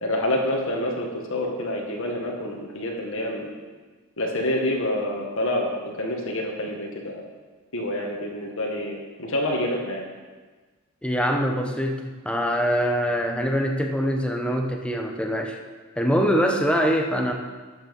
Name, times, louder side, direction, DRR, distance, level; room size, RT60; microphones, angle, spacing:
voice 1, 0.0-3.5 4.2-5.7 6.0-7.2 7.7-10.0, left 1 dB, 65° left, 0 dB, 1.6 m, -27 dB
voice 2, 11.0-15.6 16.0-17.3, equal, 5° left, 2 dB, 0.9 m, -23 dB
12.5 x 7.3 x 5.3 m, 1.4 s
head